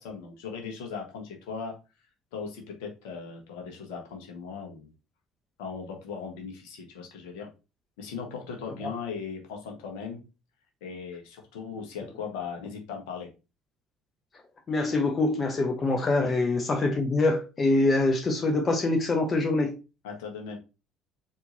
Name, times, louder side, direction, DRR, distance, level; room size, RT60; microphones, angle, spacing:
voice 1, 0.0-1.7 2.3-4.9 5.6-7.5 8.0-10.2 10.8-13.3 16.2-16.3 20.0-20.6, left 5 dB, 65° left, 1.3 m, -38 dB
voice 2, 14.7-19.8, left 2 dB, 35° left, 0.7 m, -24 dB
4.2 x 3.5 x 2.6 m
figure-of-eight pair, 55°, 0 cm